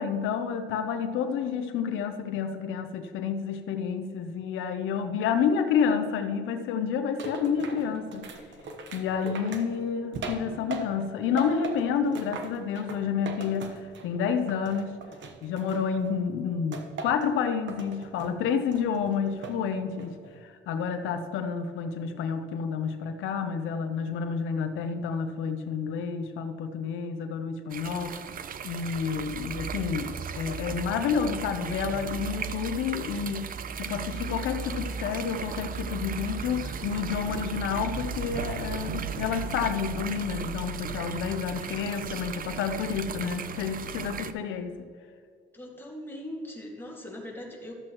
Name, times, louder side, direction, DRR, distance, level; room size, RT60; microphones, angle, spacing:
voice 1, 0.0-8.3 8.9-15.0 15.4-20.1 20.4-28.1 28.6-44.9, left 6 dB, 90° left, 8 dB, 0.7 m, -29 dB
sound 1, 7.2-11.1 11.4-14.2 14.5-16.1 16.7-17.3 17.7-18.3 18.7-19.6 20.0-20.4, right 4 dB, 70° right, 1.1 m, -39 dB
sound 2, 27.7-44.3, right 6 dB, 45° right, 0.5 m, -36 dB
voice 2, 45.5-47.7, left 1 dB, 10° left, -2 dB, 2.1 m, -40 dB
12.0 x 7.6 x 3.0 m, 2.2 s
cardioid pair, 90°, 20 cm